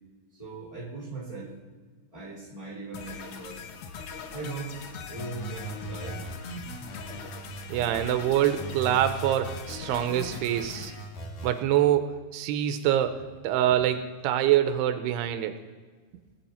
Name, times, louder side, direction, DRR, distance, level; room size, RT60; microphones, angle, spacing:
voice 1, 0.3-1.5 2.1-3.7 4.3-4.7 5.1-6.2, right 3 dB, 10° left, -4 dB, 2.2 m, -39 dB
sound 1, 2.9-11.0, left 6 dB, 90° left, 1.6 m, -42 dB
sound 2, 5.2-8.2 8.6-11.6, right 2 dB, 60° left, 2.0 m, -39 dB
voice 2, 7.7-10.9 11.4-15.6, right 11 dB, 85° right, 9 dB, 2.6 m, -25 dB
19.0 x 8.3 x 4.3 m, 1.5 s
omnidirectional pair, 4.7 m